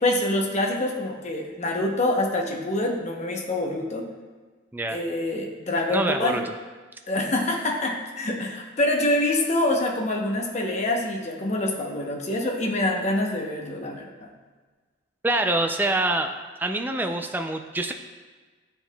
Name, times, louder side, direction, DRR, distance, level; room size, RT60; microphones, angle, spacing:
voice 1, 0.0-4.0 4.9-6.4 7.1-14.3, left 1 dB, 35° left, 0 dB, 0.8 m, -26 dB
voice 2, 5.9-6.4 15.2-16.3 16.6-17.9, right 2 dB, 10° right, 5 dB, 0.3 m, -25 dB
9.4 x 4.5 x 2.2 m, 1.4 s
head